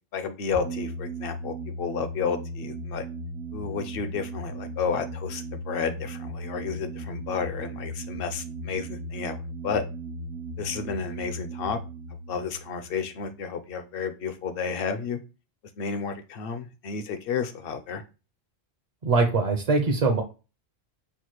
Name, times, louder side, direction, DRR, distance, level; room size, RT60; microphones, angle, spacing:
voice 1, 0.1-3.0 3.5-9.4 9.6-9.8 10.6-11.8 12.3-15.2 15.8-18.0, left 6 dB, 65° left, 9 dB, 0.7 m, -31 dB
sound 1, 0.5-13.7, right 2 dB, 80° right, 1.0 m, -37 dB
voice 2, 19.0-20.2, right 3 dB, 45° right, 3 dB, 0.5 m, -22 dB
5.7 x 2.4 x 3.0 m, 0.31 s
omnidirectional pair, 1.1 m